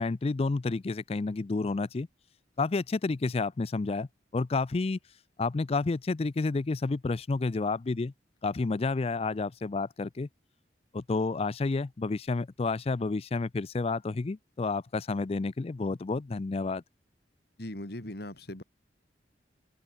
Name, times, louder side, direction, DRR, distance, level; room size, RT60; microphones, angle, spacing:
voice 1, 0.0-2.1 2.6-5.0 5.4-8.1 8.4-10.3 10.9-16.8, left 3 dB, 35° left, 0.4 m, -30 dB
voice 2, 17.6-18.6, left 1 dB, 60° left, 3.1 m, -39 dB
head